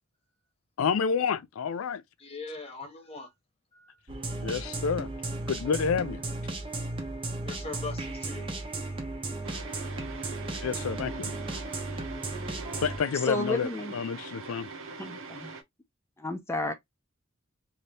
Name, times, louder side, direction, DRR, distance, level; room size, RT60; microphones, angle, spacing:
voice 1, 0.8-2.0 4.4-5.1 5.5-6.2 10.6-11.3 12.8-14.7, left 6 dB, 90° left, 0.4 m, -29 dB
voice 2, 2.2-3.3 3.7-4.0 7.4-8.5, left 3 dB, 30° left, 1.0 m, -41 dB
sound 1, 4.1-13.0, right 2 dB, 25° right, 0.8 m, -35 dB
sound 2, 9.4-15.6, right 3 dB, 70° right, 0.8 m, -42 dB
voice 3, 13.2-14.0 15.0-15.5 16.2-16.7, left 1 dB, 15° left, 0.6 m, -32 dB
2.8 x 2.7 x 3.2 m
head